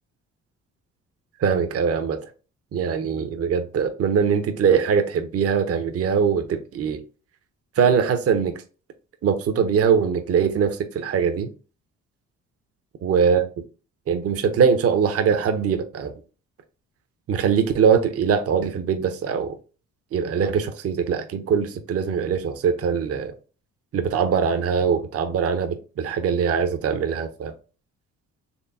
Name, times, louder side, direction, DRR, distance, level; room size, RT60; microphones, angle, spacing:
voice 1, 1.4-2.2 2.7-7.0 7.8-8.5 9.2-11.5 13.0-13.5 14.1-16.1 17.3-19.5 20.1-23.3 23.9-27.5, right 6 dB, 50° right, 0.7 m, -22 dB
4.4 x 3.2 x 2.6 m
cardioid pair, 90°, 30 cm